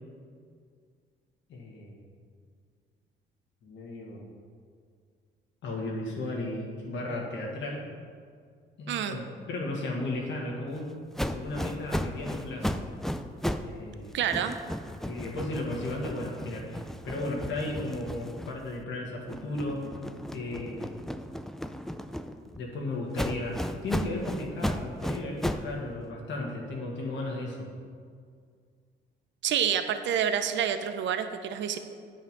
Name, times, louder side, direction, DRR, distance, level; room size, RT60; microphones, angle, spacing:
voice 1, 1.5-2.0 3.6-4.3 5.6-7.8 8.8-10.9 11.3-12.8 13.6-14.2 15.0-20.0 20.3-21.0 22.6-27.7, left 2 dB, 75° left, -2 dB, 1.7 m, -35 dB
voice 2, 8.9-9.2 14.1-14.6 29.4-31.8, right 9 dB, 70° right, 9 dB, 0.6 m, -28 dB
sound 1, 11.2-13.8 14.1-18.8 19.3-22.6 23.1-25.7, equal, ahead, 0.4 m, -35 dB
9.2 x 5.7 x 5.3 m, 2.1 s
cardioid pair, 90°, 20 cm